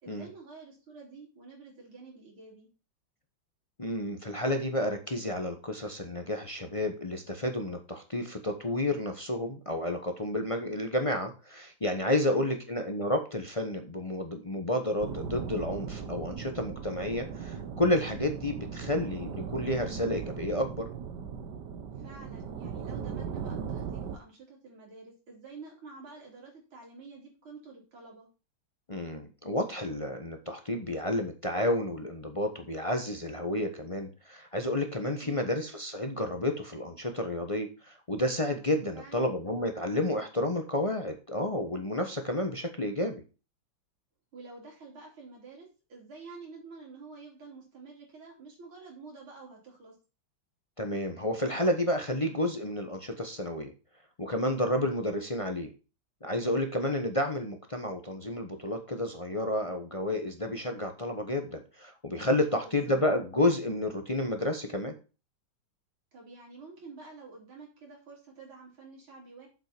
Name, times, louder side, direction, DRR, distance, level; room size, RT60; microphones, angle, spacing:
voice 1, 0.0-2.7 12.3-12.7 22.0-28.3 35.2-35.5 38.9-39.3 44.3-50.0 62.5-63.0 66.1-69.5, right 4 dB, 85° right, -2 dB, 4.0 m, -49 dB
voice 2, 3.8-20.9 28.9-43.2 50.8-53.7 54.2-55.7 56.2-64.9, left 1 dB, 25° left, 5 dB, 0.7 m, -31 dB
sound 1, 15.0-24.2, right 6 dB, 60° right, 1.4 m, -38 dB
7.4 x 5.9 x 5.9 m, 0.33 s
omnidirectional pair, 2.2 m